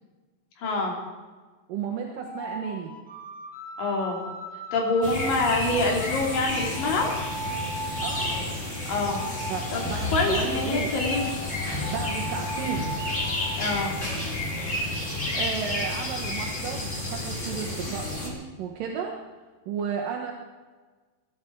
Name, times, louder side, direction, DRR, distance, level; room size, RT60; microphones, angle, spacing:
voice 1, 0.6-1.0 3.8-4.3 4.7-7.1 8.9-9.2 9.7-11.3 13.5-13.9, left 2 dB, 80° left, 0 dB, 4.6 m, -26 dB
voice 2, 1.7-2.9 8.0-8.4 9.5-10.9 11.9-12.9 15.3-19.2 19.7-20.3, right 7 dB, 80° right, 1 dB, 2.8 m, -33 dB
sound 1, 2.1-8.5 9.0-13.6, equal, 5° left, 1.1 m, -38 dB
sound 2, 5.0-18.3, left 2 dB, 20° left, 3.2 m, -31 dB
24.0 x 10.0 x 4.6 m, 1.3 s
omnidirectional pair, 3.9 m